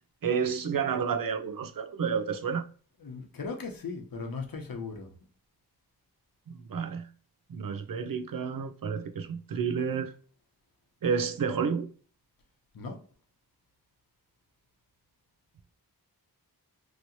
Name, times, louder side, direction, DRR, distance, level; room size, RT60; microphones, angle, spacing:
voice 1, 0.2-2.7 6.5-7.1 7.5-10.1 11.0-11.9, right 6 dB, 60° right, 0.6 m, -30 dB
voice 2, 3.0-5.1 12.7-13.0, left 4 dB, 65° left, 0.9 m, -38 dB
3.1 x 2.9 x 2.6 m
wide cardioid pair, 70°, 38 cm